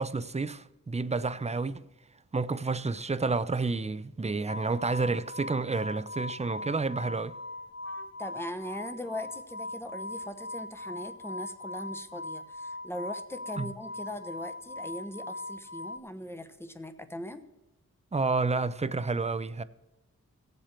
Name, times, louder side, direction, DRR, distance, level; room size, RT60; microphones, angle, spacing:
voice 1, 0.0-1.9 2.3-7.4 13.6-13.7 18.1-19.6, right 3 dB, 20° right, 0.5 m, -30 dB
sound 1, 4.5-16.0, left 2 dB, 50° left, 1.2 m, -40 dB
voice 2, 7.8-17.4, left 1 dB, 5° left, 1.0 m, -40 dB
17.5 x 7.5 x 4.4 m
wide cardioid pair, 75°, 32 cm